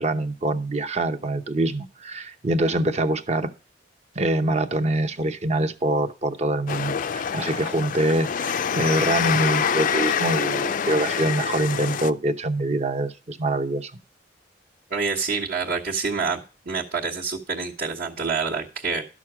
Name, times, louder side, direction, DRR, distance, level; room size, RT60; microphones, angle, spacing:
voice 1, 0.0-3.5 4.1-13.9, right 1 dB, 40° right, 9 dB, 0.8 m, -24 dB
sound 1, 6.7-12.1, left 7 dB, 50° left, 0.4 m, -26 dB
voice 2, 14.9-16.4 16.6-19.0, right 4 dB, 60° right, -5 dB, 1.4 m, -27 dB
12.5 x 6.3 x 4.9 m, 0.33 s
head